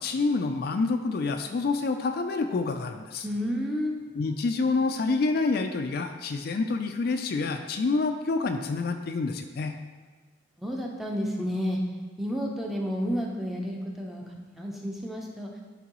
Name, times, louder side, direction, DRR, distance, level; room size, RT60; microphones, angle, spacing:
voice 1, 0.0-3.3 4.2-9.7, left 3 dB, 50° left, 6 dB, 0.3 m, -27 dB
voice 2, 3.2-4.0 10.6-11.8 12.2-15.5, equal, ahead, -1 dB, 0.6 m, -31 dB
11.0 x 3.7 x 3.0 m, 1.4 s
head